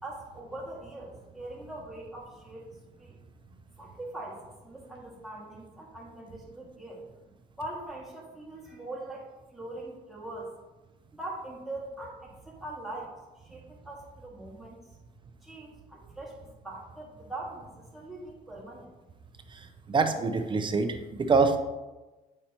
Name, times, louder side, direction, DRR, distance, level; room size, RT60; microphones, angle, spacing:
voice 1, 0.0-2.7 3.0-3.2 3.8-7.0 7.6-10.5 11.2-14.8 15.4-18.9, right 2 dB, ahead, -4 dB, 2.0 m, -42 dB
voice 2, 19.9-21.6, right 4 dB, 30° right, 7 dB, 0.7 m, -25 dB
8.1 x 5.5 x 2.9 m, 1.1 s
cardioid pair, 110°, 17 cm